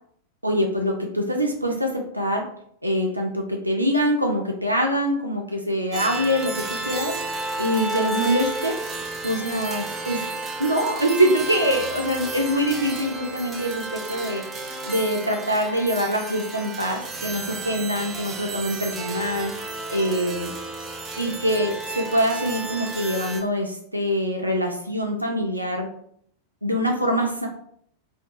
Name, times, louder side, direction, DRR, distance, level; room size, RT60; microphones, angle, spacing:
voice 1, 0.4-2.4 2.8-7.1 7.6-8.7 9.2-10.2 10.6-14.4 14.8-19.5 19.9-20.5 21.2-25.9 26.6-27.5, equal, 85° right, 1 dB, 0.3 m, -24 dB
sound 1, 5.9-23.4, right 3 dB, 20° right, 0.4 m, -32 dB
2.6 x 2.2 x 2.5 m, 0.67 s
figure-of-eight pair, 90°, 0 cm